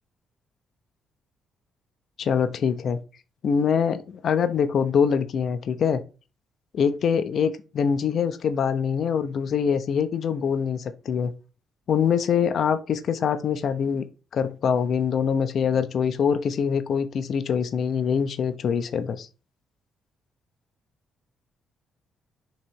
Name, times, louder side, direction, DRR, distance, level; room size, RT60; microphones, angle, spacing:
voice 1, 2.2-3.0 3.4-6.0 6.7-11.3 11.9-14.0 14.3-19.3, left 7 dB, 60° left, 0.8 m, -24 dB
6.0 x 3.3 x 4.7 m
cardioid pair, 90°, 0 cm